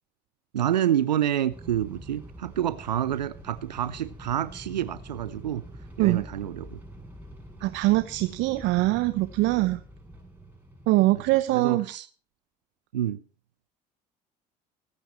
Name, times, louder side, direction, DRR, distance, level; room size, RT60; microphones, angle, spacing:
voice 1, 0.5-5.7 6.0-6.8 9.6-9.7 11.5-12.1 12.9-13.2, right 11 dB, 90° right, 0.6 m, -28 dB
sound 1, 1.5-11.4, right 1 dB, 10° right, 6.4 m, -45 dB
voice 2, 7.6-9.8 10.9-11.8, right 19 dB, 65° right, 0.9 m, -23 dB
25.5 x 9.2 x 3.0 m
hypercardioid pair, 60°, 21 cm